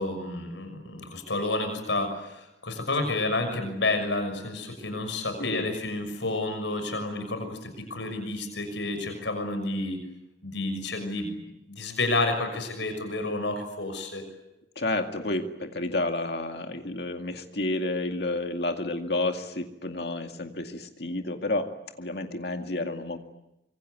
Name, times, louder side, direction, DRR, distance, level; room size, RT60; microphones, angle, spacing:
voice 1, 0.0-10.0 10.4-11.4 11.7-14.2, left 2 dB, 85° left, 7 dB, 6.3 m, -30 dB
voice 2, 5.2-5.8 14.8-21.7 22.0-23.2, left 2 dB, 65° left, 4 dB, 2.2 m, -30 dB
25.5 x 24.5 x 9.5 m, 0.88 s
head